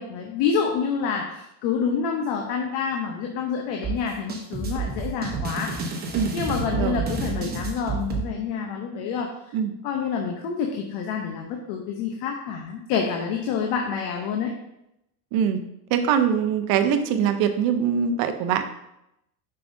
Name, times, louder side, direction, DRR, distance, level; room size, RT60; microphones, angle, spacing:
voice 1, 0.0-5.8 6.3-9.3 9.8-14.5, left 6 dB, 70° left, 2 dB, 0.9 m, -27 dB
sound 1, 3.8-8.2, right 4 dB, 20° right, 1.0 m, -29 dB
voice 2, 6.7-7.0 9.5-9.7 15.3-15.6 15.9-18.6, right 8 dB, 55° right, 8 dB, 0.7 m, -23 dB
6.8 x 5.7 x 2.7 m, 0.83 s
cardioid pair, 155°, 44 cm